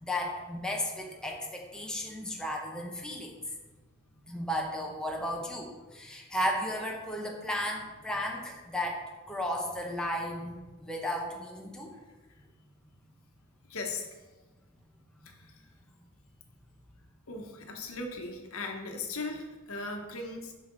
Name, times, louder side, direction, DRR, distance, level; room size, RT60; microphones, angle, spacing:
voice 1, 0.0-3.3 4.3-9.0 9.3-11.9 15.2-15.3, equal, 5° left, -1 dB, 0.8 m, -34 dB
voice 2, 13.7-14.1 15.2-15.6 17.3-20.5, left 3 dB, 75° left, 2 dB, 1.1 m, -38 dB
6.5 x 5.8 x 3.9 m, 1.2 s
head